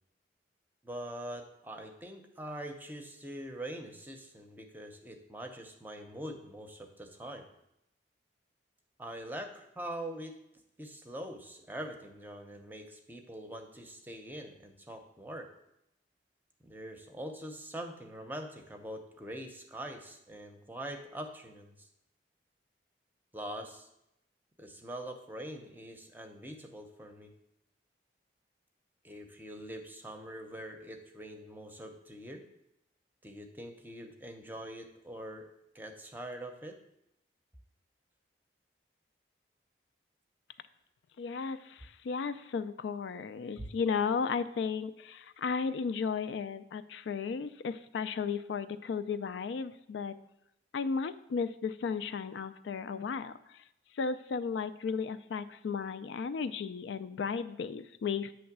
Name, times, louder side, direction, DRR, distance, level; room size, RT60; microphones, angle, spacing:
voice 1, 0.8-7.5 9.0-10.4 10.8-15.5 16.6-21.9 23.3-23.9 24.6-27.3 29.0-32.4 33.2-35.5 35.7-36.8 43.6-43.7, right 1 dB, 10° right, 5 dB, 0.6 m, -43 dB
voice 2, 41.2-50.1 50.7-53.6 54.0-58.3, left 5 dB, 80° left, 12 dB, 0.3 m, -34 dB
8.5 x 3.1 x 5.9 m, 0.83 s
head